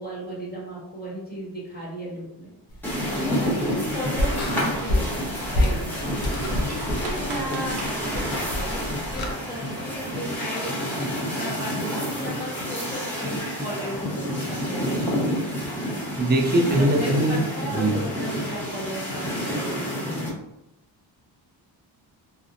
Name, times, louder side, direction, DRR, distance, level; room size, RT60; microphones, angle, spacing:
voice 1, 0.0-2.5 3.1-5.8 6.4-8.8 9.1-15.3 16.6-20.3, equal, 20° left, -6 dB, 1.3 m, -35 dB
sound 1, 2.7-9.3, left 1 dB, 50° left, 0.7 m, -29 dB
sound 2, 2.8-20.3, equal, 5° left, 0.9 m, -29 dB
sound 3, 4.7-10.4, right 3 dB, 55° right, 0.7 m, -39 dB
voice 2, 16.2-17.4 17.8-17.9, right 1 dB, 20° right, 1 dB, 0.4 m, -21 dB
2.5 x 2.1 x 2.6 m, 0.86 s
cardioid pair, 75°, 47 cm